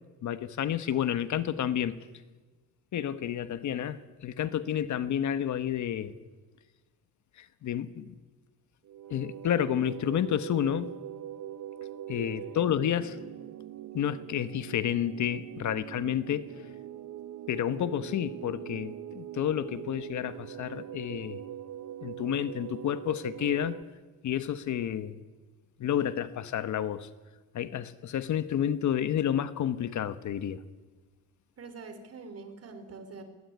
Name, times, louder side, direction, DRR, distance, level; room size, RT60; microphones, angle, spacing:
voice 1, 0.2-2.0 2.9-6.1 7.4-8.1 9.1-10.9 12.1-13.2 13.9-16.5 17.5-21.4 22.0-23.8 24.2-25.2 25.8-27.1 27.5-30.6, left 10 dB, 55° left, 13 dB, 1.2 m, -30 dB
sound 1, 8.8-23.8, right 11 dB, 65° right, 1.1 m, -42 dB
voice 2, 12.1-12.6 31.6-33.2, right 4 dB, 45° right, 9 dB, 4.0 m, -45 dB
20.0 x 20.0 x 9.6 m, 1.3 s
cardioid pair, 115°, 34 cm